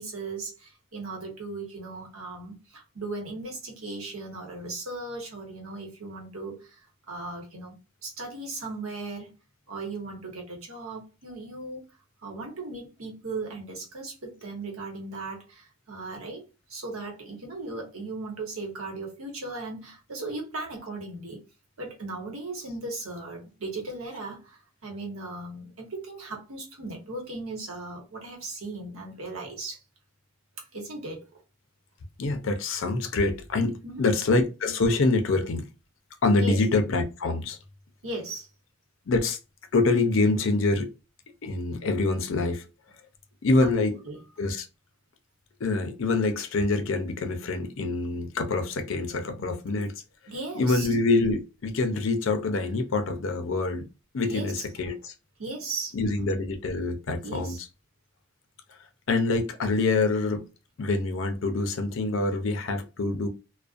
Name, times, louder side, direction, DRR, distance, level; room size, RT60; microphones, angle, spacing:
voice 1, 0.0-6.8 7.1-9.3 9.7-11.8 12.2-16.4 16.7-21.4 21.8-29.8 30.7-31.4 33.8-34.0 36.4-36.6 38.0-38.5 43.6-44.2 50.3-50.9 54.3-54.6 55.4-56.0 57.2-57.6, right 2 dB, 80° right, 1.0 m, -37 dB
voice 2, 32.2-35.6 36.2-37.6 39.1-39.4 39.7-40.9 41.4-42.6 43.4-44.0 44.4-44.7 45.6-49.9 50.5-53.8 54.1-55.1 55.9-57.6 59.1-60.5 60.8-63.3, left 3 dB, 60° left, 0.5 m, -25 dB
2.4 x 2.1 x 2.4 m
head